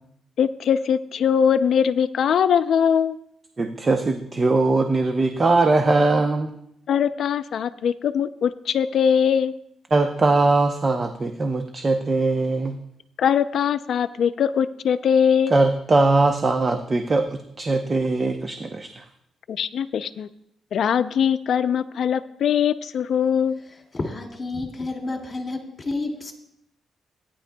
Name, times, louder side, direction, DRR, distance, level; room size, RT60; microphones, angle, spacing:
voice 1, 0.4-3.2 6.9-9.5 13.2-15.6 19.5-20.3 20.7-23.6, left 8 dB, 65° left, 13 dB, 0.5 m, -21 dB
voice 2, 3.6-6.5 9.9-12.8 15.5-18.9, right 3 dB, 30° right, 6 dB, 0.7 m, -21 dB
voice 3, 23.7-26.3, left 2 dB, 25° left, 0 dB, 2.3 m, -30 dB
17.0 x 9.9 x 2.3 m, 0.77 s
cardioid pair, 100°, 0 cm